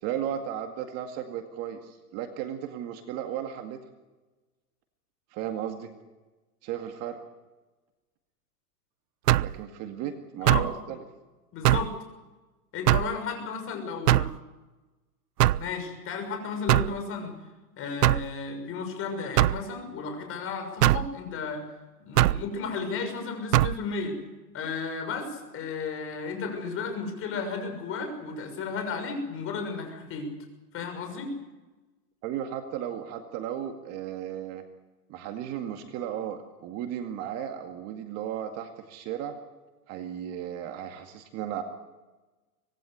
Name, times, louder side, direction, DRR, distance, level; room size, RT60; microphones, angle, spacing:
voice 1, 0.0-3.8 5.3-5.9 6.6-7.2 9.4-11.0 32.2-34.6 35.1-39.4 39.9-41.6, right 10 dB, 35° right, 5 dB, 2.1 m, -35 dB
sound 1, 9.3-9.6 10.5-10.7 11.6-11.9 12.9-13.1 14.1-14.4 15.4-15.7 16.7-17.0 18.0-18.3 19.4-19.6 20.8-21.1 22.2-22.4 23.5-23.8, right 15 dB, 75° right, 0.7 m, -21 dB
voice 2, 10.4-10.9 11.5-11.9 12.7-14.3 15.6-17.3 17.8-21.6 22.0-24.2 24.5-30.3 30.7-31.3, left 5 dB, 25° left, 5 dB, 6.6 m, -34 dB
25.0 x 20.5 x 8.1 m, 1.2 s
hypercardioid pair, 145°, 47 cm